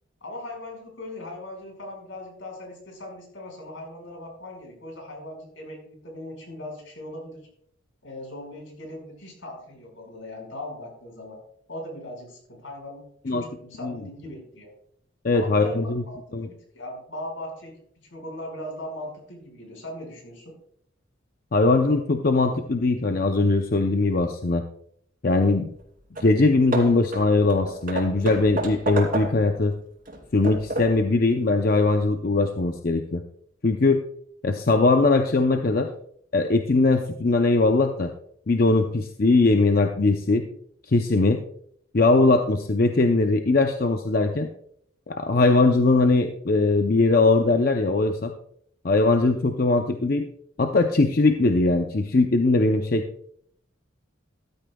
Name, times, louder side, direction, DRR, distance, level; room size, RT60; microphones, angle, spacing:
voice 1, 0.2-7.5 8.0-11.4 11.7-14.7 15.3-17.8 18.1-20.6, left 1 dB, 80° left, 1 dB, 5.2 m, -39 dB
voice 2, 15.2-16.0 16.3-16.5 21.5-24.6 25.2-25.7 26.2-29.7 30.3-33.2 33.6-34.0 34.4-35.9 36.3-38.1 38.5-40.4 40.9-41.4 41.9-44.5 45.1-48.3 48.8-50.2 50.6-53.1, left 3 dB, 45° left, 5 dB, 0.6 m, -20 dB
Hammer / Wood, 25.8-25.9 26.1-26.4 26.7-29.6 30.0-31.1, right 2 dB, 45° right, 2.8 m, -31 dB
14.5 x 12.5 x 2.3 m, 0.67 s
head